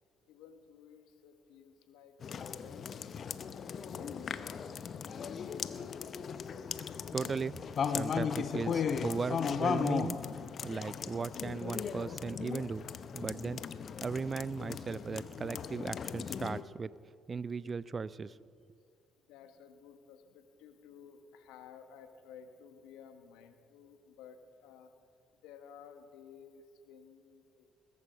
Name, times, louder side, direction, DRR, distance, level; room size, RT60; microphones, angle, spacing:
voice 1, 0.3-4.9 17.4-17.5 19.3-24.9 25.4-27.7, left 7 dB, 75° left, 8 dB, 1.3 m, -55 dB
sound 1, 2.2-16.6, left 6 dB, 50° left, 0.7 m, -37 dB
voice 2, 7.1-7.5 7.8-10.2 10.6-12.9 13.1-13.6 14.0-16.9 17.3-18.4, right 5 dB, 35° right, 19 dB, 0.4 m, -37 dB
20.5 x 11.0 x 5.1 m, 2.3 s
hypercardioid pair, 55°, 0 cm